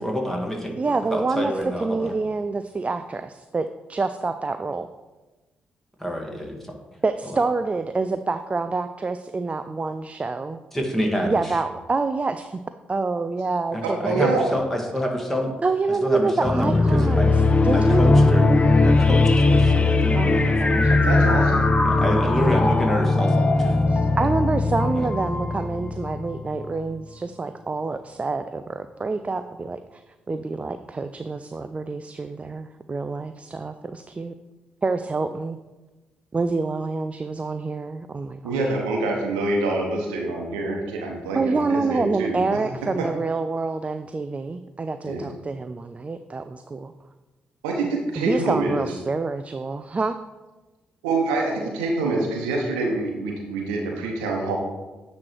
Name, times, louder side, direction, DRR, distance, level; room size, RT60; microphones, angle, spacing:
voice 1, 0.0-2.1 6.0-6.5 7.2-7.4 10.7-11.5 13.7-15.5 16.0-17.3 17.7-18.5 18.8-21.0 21.8-23.7 24.9-25.1, equal, 5° left, 1 dB, 1.8 m, -28 dB
voice 2, 0.7-1.5 1.8-4.9 7.0-10.6 11.2-12.6 12.9-14.3 15.6-17.3 17.6-18.4 20.2-21.6 23.9-30.0 30.3-34.3 34.8-35.6 36.3-38.6 41.3-46.9 48.2-50.2, right 3 dB, 30° right, 9 dB, 0.3 m, -27 dB
voice 3, 13.8-14.5 21.0-21.7 38.4-42.4 45.1-45.3 47.6-48.9 51.0-54.6, right 2 dB, 85° right, 0 dB, 0.9 m, -25 dB
sound 1, 16.4-26.6, left 2 dB, 25° left, 0.6 m, -19 dB
9.4 x 3.2 x 4.5 m, 1.2 s
hypercardioid pair, 40°, 4 cm